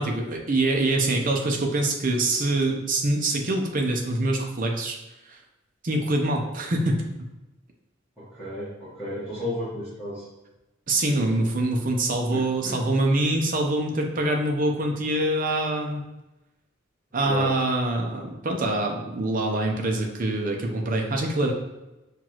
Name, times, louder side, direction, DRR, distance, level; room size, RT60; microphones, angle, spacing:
voice 1, 0.0-5.0 5.3-5.4 5.8-7.0 10.9-16.0 17.1-21.5, right 2 dB, 40° right, 2 dB, 0.6 m, -25 dB
voice 2, 8.2-10.3 12.3-13.0 17.2-17.6, left 1 dB, 5° right, -13 dB, 1.2 m, -33 dB
5.8 x 2.4 x 3.0 m, 1.0 s
head